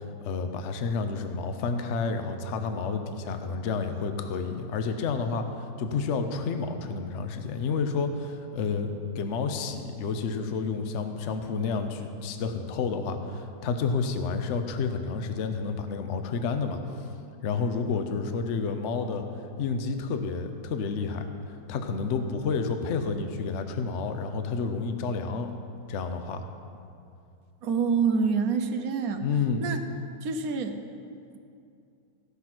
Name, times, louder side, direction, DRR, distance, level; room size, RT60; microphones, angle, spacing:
voice 1, 0.2-16.8 17.4-19.2 19.6-21.3 21.7-25.6 25.9-26.4 29.2-29.8, left 4 dB, 55° left, 7 dB, 0.8 m, -30 dB
voice 2, 27.6-29.2 29.6-29.8 30.2-30.8, right 5 dB, 65° right, 6 dB, 1.1 m, -26 dB
16.0 x 5.8 x 6.0 m, 2.5 s
omnidirectional pair, 1.9 m